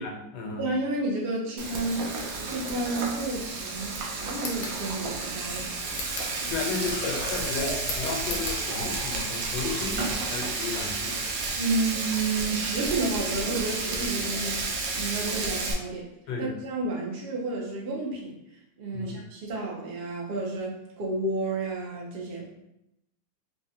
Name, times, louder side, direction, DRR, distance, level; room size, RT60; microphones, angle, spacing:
voice 1, 0.0-0.7 6.5-11.2 16.3-16.5 18.9-19.2, left 4 dB, 85° left, 0 dB, 1.4 m, -34 dB
voice 2, 0.6-5.7 11.6-14.7 15.0-16.1 16.4-18.4 18.8-22.5, right 2 dB, 65° right, -2 dB, 0.6 m, -31 dB
Frying (food), 1.6-15.7, right 3 dB, 85° right, 1.3 m, -31 dB
sound 1, 4.3-4.8 5.9-6.4 7.8-8.6, left 3 dB, 65° left, 1.0 m, -37 dB
Liquid, 6.5-12.4 13.1-13.2 13.7-13.8 15.4-15.5 15.7-15.8, left 2 dB, 45° left, 0.6 m, -40 dB
3.5 x 2.1 x 2.7 m, 0.83 s
omnidirectional pair, 2.0 m